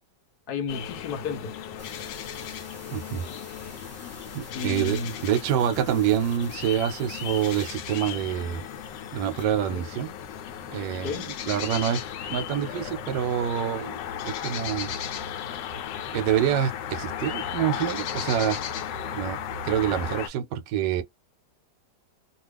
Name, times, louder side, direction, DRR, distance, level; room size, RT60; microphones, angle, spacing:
voice 1, 0.5-1.5 4.5-5.1 9.7-9.8 11.0-11.3, left 4 dB, 65° left, 1.1 m, -32 dB
sound 1, 0.7-20.3, left 8 dB, 85° left, 1.3 m, -35 dB
sound 2, 1.8-11.1, left 1 dB, 10° left, 1.0 m, -50 dB
voice 2, 2.9-3.2 4.3-8.6 9.1-10.1 10.7-12.0 12.3-14.9 16.1-18.6 19.1-19.4 19.6-21.0, right 10 dB, 75° right, 1.2 m, -26 dB
2.8 x 2.3 x 3.3 m
omnidirectional pair, 1.9 m